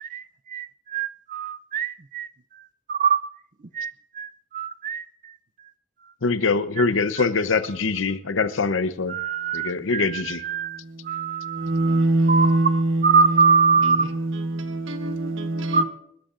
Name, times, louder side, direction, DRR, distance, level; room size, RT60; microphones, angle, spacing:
voice 1, 0.0-2.3 2.9-3.2 3.7-5.3 6.8-6.9 7.2-7.3 9.1-10.8 11.1-12.0 12.3-14.0 15.7-15.8, right 5 dB, 40° right, 0.5 m, -24 dB
voice 2, 6.2-9.2 9.5-10.4, left 4 dB, 75° left, 0.8 m, -23 dB
voice 3, 10.6-15.8, right 2 dB, 75° right, 1.4 m, -24 dB
28.0 x 12.5 x 2.5 m
head